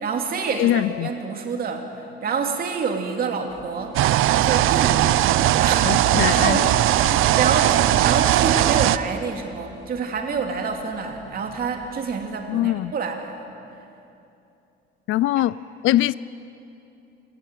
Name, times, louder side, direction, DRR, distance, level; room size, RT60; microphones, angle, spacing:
voice 1, 0.0-4.0 4.4-5.1 5.6-5.9 6.2-13.5, right 5 dB, 45° right, 3 dB, 2.7 m, -27 dB
voice 2, 0.5-1.1 5.8-6.6 12.5-12.9 15.1-15.6 15.8-16.1, left 14 dB, 70° left, 20 dB, 0.5 m, -22 dB
sound 1, 3.5-12.3, right 2 dB, 20° right, 3.9 m, -48 dB
sound 2, 3.9-9.0, right 13 dB, 80° right, 0.7 m, -19 dB
26.5 x 14.5 x 9.4 m, 2.7 s
cardioid pair, 150°, 21 cm